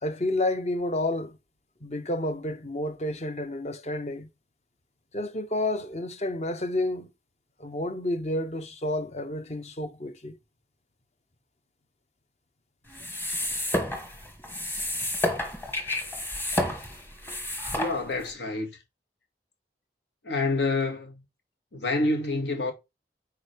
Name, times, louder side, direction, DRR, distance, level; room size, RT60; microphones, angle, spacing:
voice 1, 0.0-1.4 1.8-4.3 5.1-7.1 7.6-10.4, left 1 dB, 40° left, 0.8 m, -30 dB
sound 1, 12.9-18.3, left 1 dB, 10° left, 1.3 m, -31 dB
voice 2, 17.7-18.7 20.2-21.2 21.7-22.7, left 2 dB, 85° left, 1.9 m, -27 dB
8.8 x 4.8 x 3.4 m
head